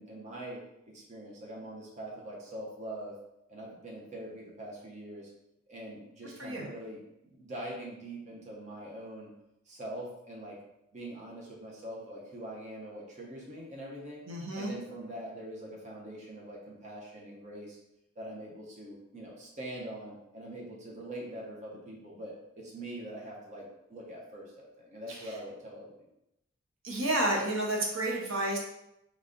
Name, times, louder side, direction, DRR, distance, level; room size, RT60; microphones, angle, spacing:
voice 1, 0.0-3.1 3.5-5.3 5.7-9.3 9.7-10.6 10.9-14.2 14.5-17.8 18.2-25.9, right 1 dB, 35° right, -3 dB, 0.8 m, -43 dB
voice 2, 14.3-14.7 25.1-25.3 26.8-28.6, right 1 dB, 75° right, -1 dB, 1.0 m, -31 dB
3.9 x 3.3 x 3.7 m, 0.86 s
head